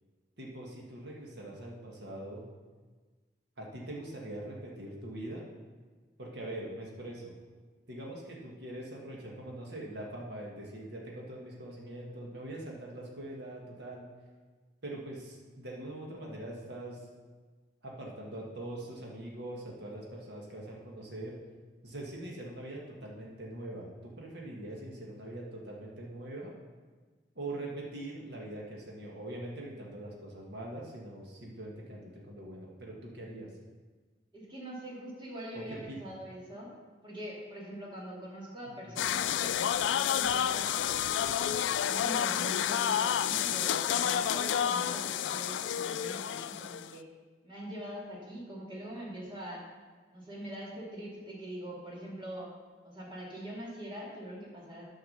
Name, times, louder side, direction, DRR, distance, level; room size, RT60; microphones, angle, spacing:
voice 1, 0.4-2.4 3.6-5.4 6.2-7.4 7.9-14.1 14.8-17.0 17.8-21.3 21.8-26.5 27.3-33.5 35.7-36.0 38.9-39.0, right 1 dB, 65° right, -2 dB, 1.6 m, -42 dB
voice 2, 34.3-36.7 37.0-41.0 41.8-47.0 47.4-49.6 50.1-52.5 52.8-54.8, right 1 dB, 30° right, -4 dB, 2.4 m, -43 dB
sound 1, 39.0-46.9, left 9 dB, 85° left, 0.3 m, -30 dB
9.4 x 4.8 x 6.6 m, 1.4 s
head